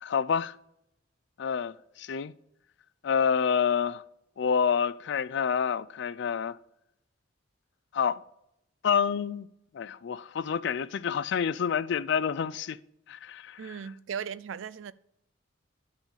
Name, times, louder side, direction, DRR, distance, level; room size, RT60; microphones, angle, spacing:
voice 1, 0.0-0.5 1.4-2.3 3.0-4.0 4.4-6.6 7.9-8.2 8.8-9.5 9.7-12.8 13.1-13.8, left 7 dB, 60° left, 0.4 m, -28 dB
voice 2, 13.6-14.9, right 7 dB, 80° right, 0.4 m, -37 dB
10.0 x 3.8 x 7.1 m
head